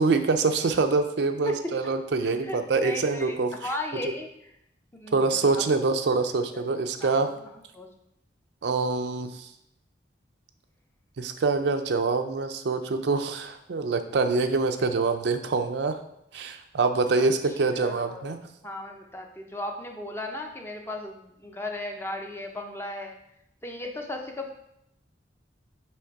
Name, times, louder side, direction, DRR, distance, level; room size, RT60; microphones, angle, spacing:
voice 1, 0.0-3.5 5.1-7.3 8.6-9.5 11.2-16.0 16.3-18.4, right 3 dB, 60° right, 7 dB, 0.4 m, -25 dB
voice 2, 2.8-4.3 4.9-5.6 6.5-6.6 7.0-7.3 7.7-7.9 17.2-17.3 17.7-18.4 18.6-23.2 23.6-24.5, left 1 dB, 10° left, 3 dB, 0.5 m, -36 dB
6.3 x 3.3 x 4.6 m, 0.78 s
head